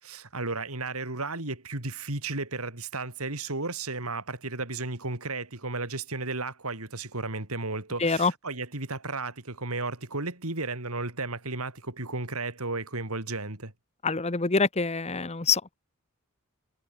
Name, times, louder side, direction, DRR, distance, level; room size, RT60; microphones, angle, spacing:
voice 1, 0.0-13.7, right 3 dB, 85° right, 4.0 m, -34 dB
voice 2, 8.0-8.3 14.0-15.7, left 4 dB, 30° left, 1.0 m, -25 dB
head